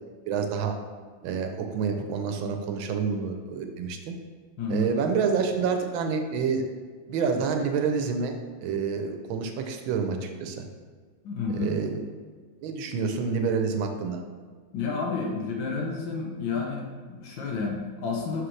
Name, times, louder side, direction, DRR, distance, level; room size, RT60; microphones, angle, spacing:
voice 1, 0.2-0.8 1.2-4.1 4.7-6.6 7.1-8.3 8.6-10.6 11.5-11.9 12.6-14.2, right 5 dB, 85° right, 5 dB, 1.4 m, -28 dB
voice 2, 4.6-4.9 11.2-11.7 14.7-18.5, left 4 dB, 70° left, -1 dB, 1.6 m, -30 dB
6.0 x 4.9 x 3.2 m, 1.6 s
omnidirectional pair, 2.2 m